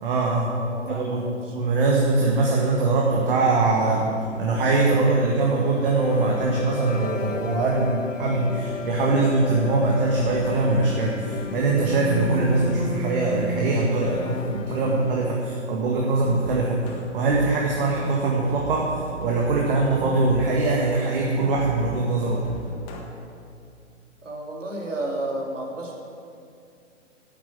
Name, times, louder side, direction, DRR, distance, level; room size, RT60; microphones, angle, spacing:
voice 1, 0.0-0.5 0.9-1.3 1.5-4.1 4.4-16.8 17.1-22.4, right 3 dB, 45° right, -2 dB, 1.9 m, -22 dB
voice 2, 0.6-1.6 24.2-25.9, right 1 dB, 80° right, -1 dB, 3.2 m, -32 dB
sound 1, 2.7-15.6, left 3 dB, 85° left, 0.8 m, -34 dB
sound 2, 16.1-23.0, right 1 dB, 25° left, 1.6 m, -39 dB
9.1 x 8.7 x 8.4 m, 2.4 s
figure-of-eight pair, 130°, 37 cm